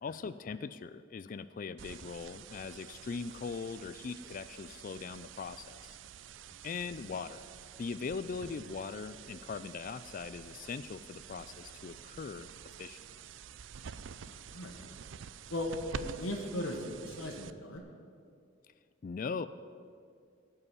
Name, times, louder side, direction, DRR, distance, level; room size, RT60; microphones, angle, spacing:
voice 1, 0.0-6.0 6.6-7.4 7.8-12.5 12.8-13.0 19.0-19.5, left 5 dB, 40° left, 14 dB, 0.3 m, -40 dB
sound 1, 1.8-17.8, right 7 dB, 65° right, 0.4 m, -48 dB
voice 2, 14.1-14.9 15.5-17.8, left 1 dB, 90° left, 2 dB, 1.6 m, -38 dB
15.5 x 5.5 x 9.8 m, 2.3 s
head